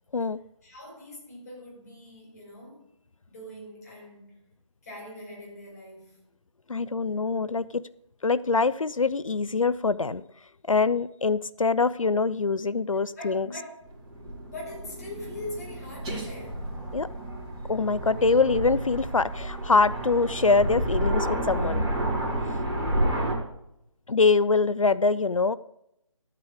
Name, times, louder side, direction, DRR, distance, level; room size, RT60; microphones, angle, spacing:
voice 1, 0.6-2.9 3.3-4.5 4.8-6.2 13.1-13.7 14.2-17.0 18.2-18.5, left 1 dB, 30° left, -3 dB, 4.8 m, -42 dB
voice 2, 6.7-7.8 8.2-10.2 10.7-13.5 16.9-17.1 17.7-21.9 24.1-25.6, left 4 dB, 75° left, 17 dB, 0.5 m, -24 dB
Aircraft, 13.8-23.3, right 1 dB, 15° right, 2.2 m, -30 dB
13.0 x 8.3 x 4.9 m, 0.80 s
figure-of-eight pair, 155°, 17 cm